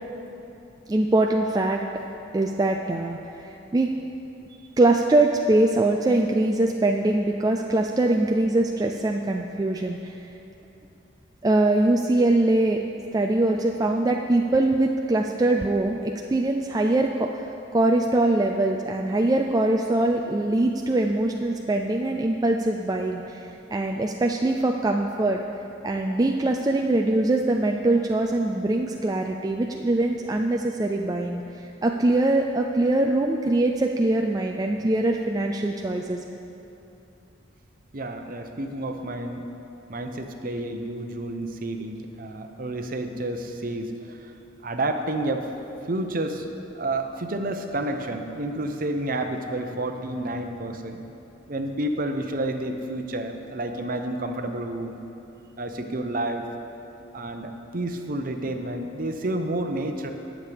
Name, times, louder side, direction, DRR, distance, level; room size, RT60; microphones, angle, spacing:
voice 1, 0.9-1.8 2.3-3.9 4.8-10.1 11.4-12.8 13.1-25.4 25.8-36.2, right 2 dB, 20° right, 2 dB, 0.3 m, -23 dB
voice 2, 37.9-39.5 39.9-44.3 44.6-45.5 45.9-46.5 46.7-51.0 51.5-55.0 55.6-56.5 57.1-60.1, right 1 dB, 45° right, 5 dB, 0.7 m, -30 dB
19.0 x 7.3 x 3.4 m, 2.9 s
head